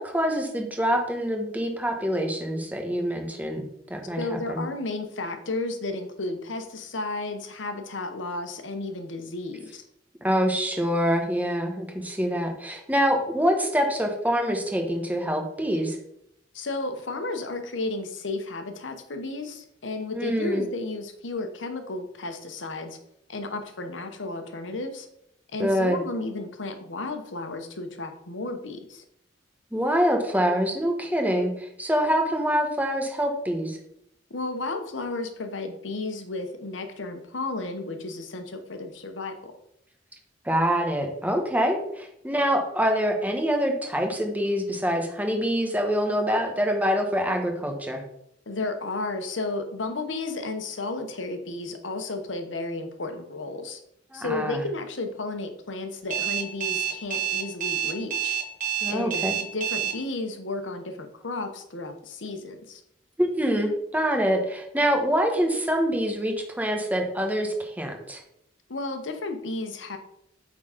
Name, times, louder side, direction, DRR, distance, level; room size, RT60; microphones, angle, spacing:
voice 1, 0.0-3.6 3.9-4.6 10.2-16.0 20.1-20.6 25.6-26.0 29.7-33.8 40.4-48.0 54.1-54.6 58.8-59.3 63.2-68.2, equal, 10° right, 3 dB, 1.1 m, -25 dB
voice 2, 4.2-9.8 16.5-23.0 23.3-25.1 25.5-29.0 34.3-39.6 48.5-53.8 54.1-58.4 58.9-62.8 68.7-70.0, left 2 dB, 90° left, 7 dB, 1.0 m, -33 dB
Alarm, 56.1-59.9, right 10 dB, 45° right, 1.5 m, -27 dB
8.4 x 3.9 x 5.0 m, 0.76 s
head